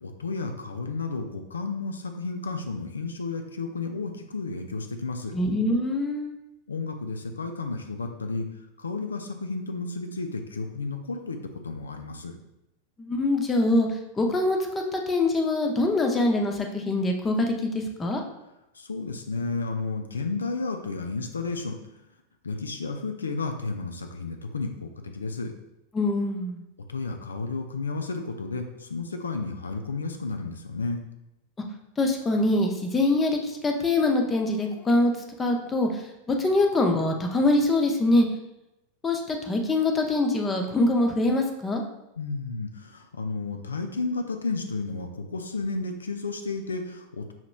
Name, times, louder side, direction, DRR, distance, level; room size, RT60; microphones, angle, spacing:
voice 1, 0.0-5.3 6.7-8.5 8.8-12.4 18.7-21.8 22.4-25.5 26.9-31.0 42.2-47.3, left 3 dB, 75° left, 5 dB, 0.3 m, -32 dB
voice 2, 5.3-6.3 13.0-18.2 25.9-26.6 32.0-35.1 35.4-36.0 36.3-38.3 39.0-41.8, left 2 dB, 15° left, 3 dB, 0.6 m, -24 dB
5.6 x 2.9 x 2.2 m, 0.89 s
figure-of-eight pair, 90°, 0 cm